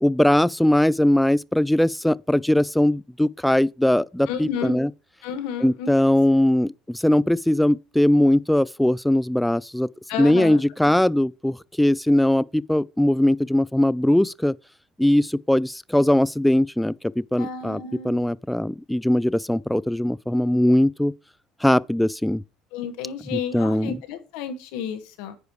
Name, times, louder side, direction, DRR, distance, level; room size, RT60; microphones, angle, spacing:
voice 1, 0.0-4.9 5.6-9.9 10.2-14.5 15.0-16.9 17.3-21.1 21.6-22.4 23.3-24.0, left 1 dB, 5° left, 0.3 m, -20 dB
voice 2, 4.3-4.7 5.2-5.9 10.1-10.6 17.4-18.3 22.7-25.4, left 7 dB, 75° left, 1.5 m, -31 dB
9.5 x 5.0 x 4.7 m
hypercardioid pair, 75°, 0 cm